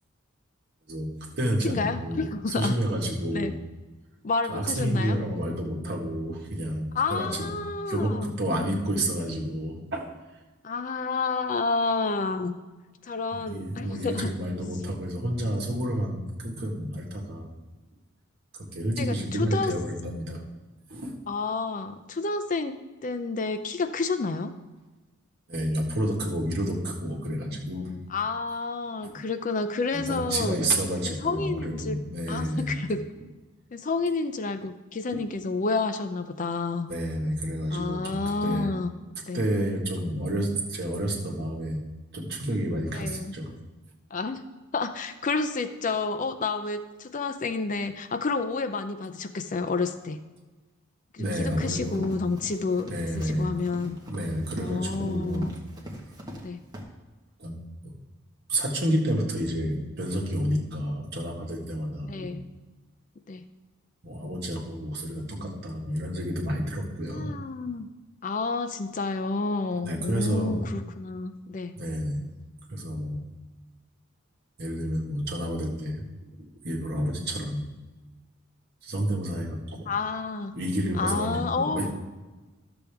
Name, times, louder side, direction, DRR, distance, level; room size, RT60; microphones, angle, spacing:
voice 1, 0.9-2.2 2.6-3.6 4.5-7.5 7.9-10.1 13.3-17.5 18.5-20.4 20.9-21.2 25.5-27.9 29.0-29.2 29.9-32.8 35.1-35.2 36.9-38.7 39.3-41.8 42.1-43.6 51.2-52.1 52.9-53.5 54.1-55.5 57.4-57.6 57.8-57.9 58.5-62.3 64.0-67.3 69.8-70.6 71.8-72.2 72.7-73.2 74.6-76.0 76.4-77.6 78.8-79.9 80.5-81.9, equal, 50° right, -1 dB, 1.6 m, -30 dB
voice 2, 1.6-2.7 3.3-3.5 4.2-5.2 6.9-8.3 10.6-12.5 13.0-14.3 19.0-19.7 21.3-22.8 23.0-24.5 28.1-30.6 31.0-32.0 32.3-33.0 33.7-36.9 37.7-38.9 39.3-39.4 42.9-43.3 44.1-44.4 44.7-50.2 51.1-52.9 53.2-54.0 54.6-55.5 56.4-56.6 62.1-62.5 63.3-63.4 67.1-67.9 68.2-71.7 79.9-80.5 80.9-81.9, left 4 dB, 40° left, 9 dB, 0.4 m, -30 dB
Run, 51.3-56.4 56.7-56.8, equal, 20° right, 1.3 m, -42 dB
12.0 x 7.0 x 3.4 m, 1.2 s
head